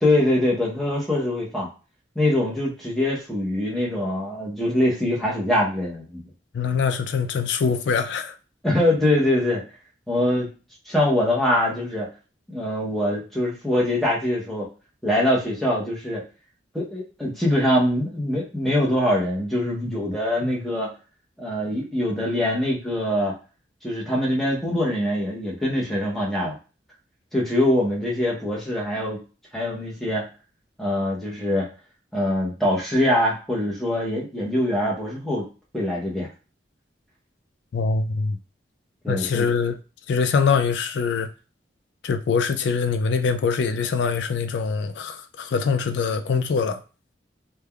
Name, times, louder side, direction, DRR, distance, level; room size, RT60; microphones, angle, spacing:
voice 1, 0.0-1.7 2.1-6.2 8.6-9.6 10.1-10.5 10.9-12.1 12.5-14.7 15.0-16.2 16.7-20.9 21.4-23.3 23.8-26.6 27.3-29.2 29.5-30.3 30.8-31.7 32.1-35.4 35.7-36.3 39.0-39.5, left 1 dB, ahead, 0.8 m, -23 dB
voice 2, 6.5-8.3 37.7-38.4 39.1-39.7 40.1-41.3 42.0-46.8, left 5 dB, 75° left, 0.3 m, -23 dB
3.3 x 2.2 x 2.3 m
head